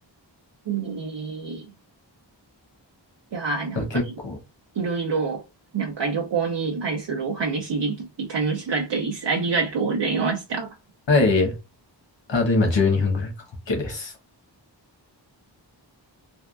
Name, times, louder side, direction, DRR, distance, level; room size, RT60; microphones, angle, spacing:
voice 1, 0.7-1.6 3.3-3.9 4.8-5.4 5.7-10.7, right 4 dB, 70° right, 0.5 m, -26 dB
voice 2, 3.8-4.4 11.1-11.5 12.3-13.3 13.7-14.1, left 3 dB, 70° left, 1.1 m, -21 dB
3.4 x 2.2 x 2.3 m
wide cardioid pair, 50°, 45 cm